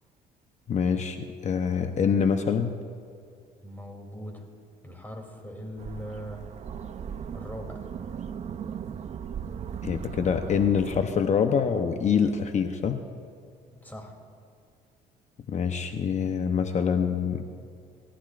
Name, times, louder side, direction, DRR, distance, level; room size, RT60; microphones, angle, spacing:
voice 1, 0.7-2.7 9.8-13.0 15.5-17.4, left 6 dB, 45° left, 6 dB, 0.8 m, -25 dB
voice 2, 3.6-4.4 4.8-6.4 7.3-7.8 13.7-14.1, equal, 10° left, 1 dB, 3.0 m, -40 dB
sound 1, 5.8-11.0, right 7 dB, 40° right, 0.6 m, -37 dB
28.5 x 14.0 x 2.5 m, 2.4 s
cardioid pair, 110°, 17 cm